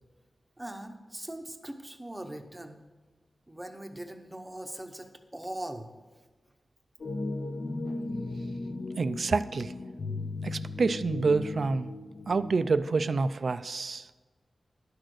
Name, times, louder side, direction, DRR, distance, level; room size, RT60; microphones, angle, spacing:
voice 1, 0.6-2.8 3.5-5.9, right 1 dB, 10° right, 6 dB, 0.8 m, -41 dB
sound 1, 7.0-12.7, left 2 dB, 45° left, 0.7 m, -36 dB
voice 2, 9.0-9.7 10.4-11.9 12.3-14.1, right 4 dB, 50° right, 14 dB, 0.4 m, -28 dB
11.5 x 6.5 x 6.3 m, 1.3 s
wide cardioid pair, 150°, 0 cm